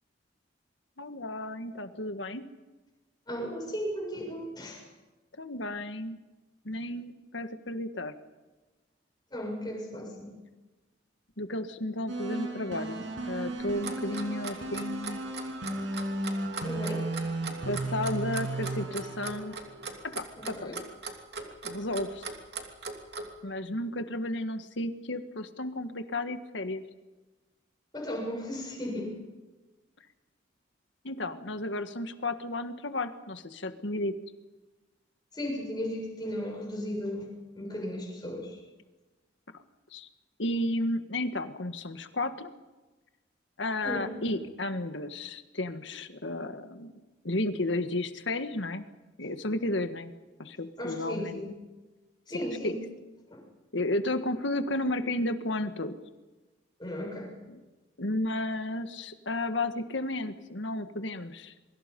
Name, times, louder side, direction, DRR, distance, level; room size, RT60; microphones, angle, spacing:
voice 1, 1.0-2.5 5.4-6.2 6.7-8.1 11.4-15.2 17.7-19.6 20.0-20.9 21.6-22.2 23.4-26.8 31.0-34.1 39.9-40.1 40.4-42.5 43.6-46.9 47.2-48.9 49.2-50.1 50.4-51.4 52.3-52.8 53.7-55.9 57.5-57.6 58.0-61.5, left 1 dB, 75° left, 8 dB, 1.7 m, -33 dB
voice 2, 3.3-4.8 9.3-10.3 16.6-17.1 20.4-20.8 27.9-29.2 35.3-38.6 43.8-44.1 50.8-51.5 52.3-52.8 53.3-53.4 56.8-57.3, equal, 20° left, 0 dB, 7.1 m, -35 dB
sound 1, 12.1-20.3, right 2 dB, 80° right, 6.7 m, -35 dB
Clock, 13.6-23.3, right 4 dB, 55° right, 3.0 m, -39 dB
27.5 x 23.5 x 5.4 m, 1.2 s
head